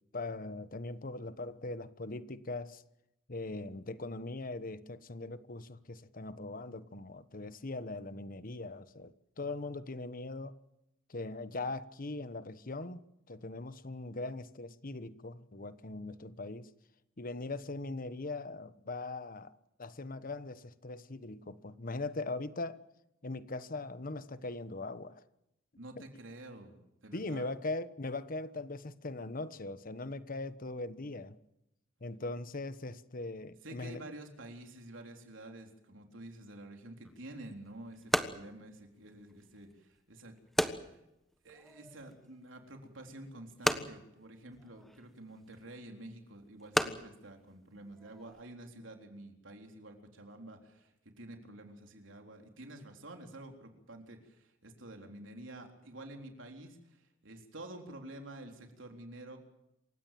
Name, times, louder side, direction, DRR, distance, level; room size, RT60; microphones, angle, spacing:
voice 1, 0.1-2.8 3.3-10.6 11.1-16.7 17.2-22.8 23.2-25.2 26.0-26.1 27.1-31.4 32.0-34.0, left 2 dB, 45° left, 1.1 m, -40 dB
voice 2, 25.8-27.5 33.6-40.4 40.6-41.0 41.4-59.4, right 1 dB, 80° right, 3.9 m, -49 dB
sound 1, 37.0-48.4, equal, ahead, 1.3 m, -38 dB
27.5 x 16.5 x 7.7 m
head